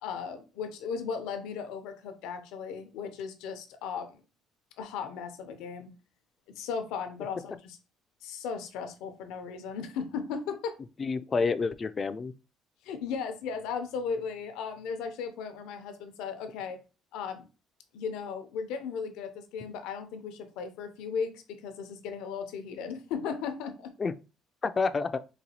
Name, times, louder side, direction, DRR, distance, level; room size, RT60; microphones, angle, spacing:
voice 1, 0.0-4.2 4.8-5.9 6.6-7.8 8.2-10.8 12.8-16.8 17.1-17.4 17.9-23.9, left 6 dB, 85° left, 0.6 m, -36 dB
voice 2, 11.0-12.3 24.0-24.1 24.6-25.2, left 4 dB, 30° left, 0.3 m, -28 dB
4.0 x 2.3 x 2.9 m
cardioid pair, 105°, 0 cm